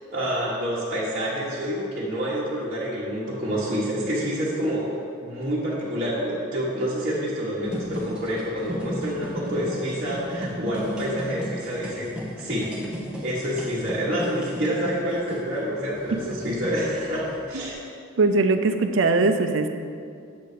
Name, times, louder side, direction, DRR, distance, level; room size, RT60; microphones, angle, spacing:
voice 1, 0.1-4.8 5.2-12.7 13.2-17.8, equal, 40° right, -10 dB, 1.2 m, -28 dB
sound 1, 7.6-17.7, equal, 5° right, 0.7 m, -35 dB
voice 2, 18.2-19.7, right 3 dB, 65° right, 7 dB, 0.5 m, -20 dB
7.6 x 4.0 x 6.6 m, 2.3 s
head